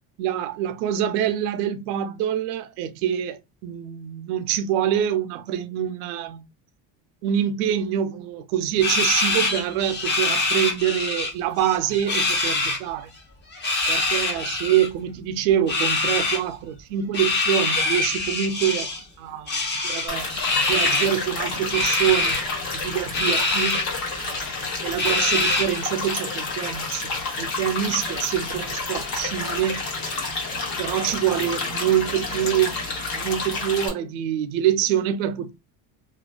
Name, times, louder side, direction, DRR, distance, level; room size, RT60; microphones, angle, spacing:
voice 1, 0.2-6.4 7.2-13.1 13.9-18.9 19.2-22.4 22.7-23.8 24.2-24.4 24.8-27.1 27.4-29.8 30.2-30.4 30.8-32.8 33.1-35.5, right 10 dB, 90° right, 0.6 m, -25 dB
sound 1, 8.8-11.3 11.6-12.8 13.5-14.9 15.7-16.4 17.1-19.0 19.5-21.2 21.7-22.4 23.1-23.8 24.3-24.4 25.0-25.9, left 3 dB, 25° left, 0.7 m, -24 dB
sound 2, 20.1-33.9, left 3 dB, 65° left, 1.2 m, -29 dB
2.4 x 2.3 x 2.2 m
cardioid pair, 135°, 42 cm